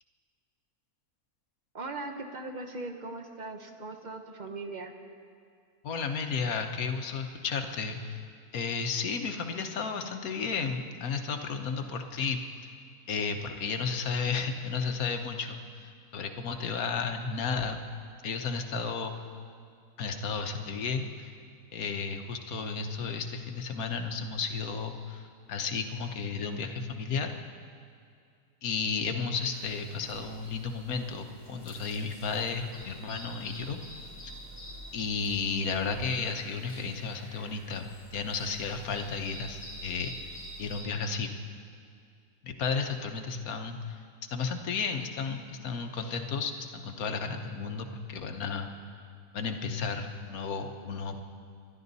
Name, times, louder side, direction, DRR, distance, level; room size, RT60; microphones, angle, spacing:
voice 1, 1.7-4.9, right 2 dB, 35° right, 5 dB, 1.0 m, -39 dB
voice 2, 5.8-8.2 8.5-12.7 13.1-17.8 18.2-19.1 20.0-21.3 21.7-25.2 25.5-27.3 28.6-33.8 34.2-34.3 34.9-41.3 42.4-44.0 44.3-49.0 49.3-51.1, left 5 dB, 70° left, 6 dB, 1.4 m, -33 dB
sound 1, 29.5-40.8, equal, 20° left, 4.9 m, -48 dB
24.5 x 11.5 x 4.1 m, 2.3 s
omnidirectional pair, 1.6 m